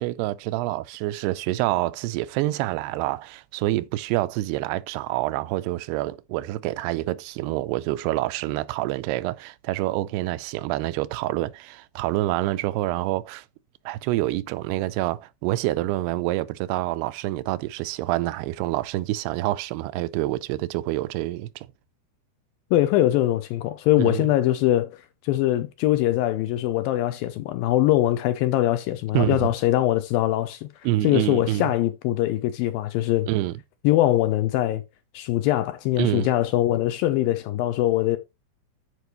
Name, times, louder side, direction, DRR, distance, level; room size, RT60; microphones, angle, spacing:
voice 1, 0.0-13.5 13.9-21.7 24.0-24.2 29.1-29.5 30.8-31.7 33.3-33.5 36.0-36.3, right 16 dB, 85° right, 2.6 m, -27 dB
voice 2, 22.7-30.7 31.0-33.3 33.8-34.8 35.1-38.2, left 14 dB, 80° left, 2.2 m, -22 dB
13.0 x 4.9 x 3.1 m
omnidirectional pair, 4.6 m